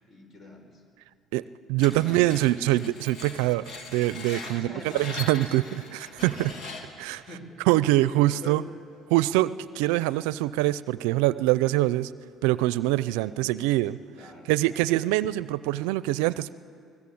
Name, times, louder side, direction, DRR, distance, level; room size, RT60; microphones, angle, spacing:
voice 1, 0.1-0.8 4.5-5.1 7.1-7.5 8.0-8.6 13.1-13.7 14.1-14.9, left 1 dB, 40° left, 5 dB, 5.6 m, -45 dB
voice 2, 1.7-3.6 3.9-6.5 7.0-7.2 7.7-8.6 9.1-12.1 12.4-14.0 14.5-16.5, right 16 dB, 80° right, 17 dB, 0.5 m, -24 dB
Screech, 1.8-7.1, left 4 dB, 60° left, 3.2 m, -40 dB
24.5 x 19.5 x 8.6 m, 2.3 s
hypercardioid pair, 70°, 0 cm